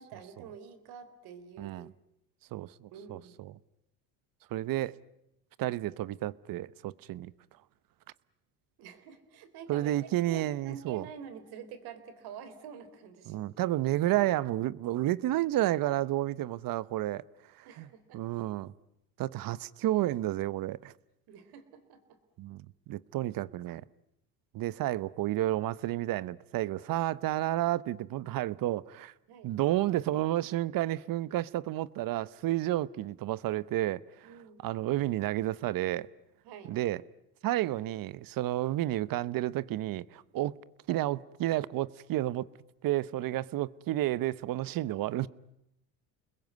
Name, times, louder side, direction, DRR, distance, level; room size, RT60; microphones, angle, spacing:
voice 1, 0.0-1.8 2.9-3.4 8.8-13.5 17.7-18.2 21.3-22.2 29.3-29.5 34.2-34.6 36.4-36.8, right 7 dB, 75° right, 3.7 m, -47 dB
voice 2, 1.6-1.9 2.5-3.6 4.5-5.0 5.6-7.3 9.7-11.1 13.3-18.7 19.2-20.9 22.4-23.8 24.5-29.1 29.4-36.1 36.7-37.0 37.4-40.6 40.9-42.5 42.8-45.3, right 15 dB, 60° right, 1.0 m, -31 dB
30.0 x 21.5 x 9.3 m
cardioid pair, 105°, 38 cm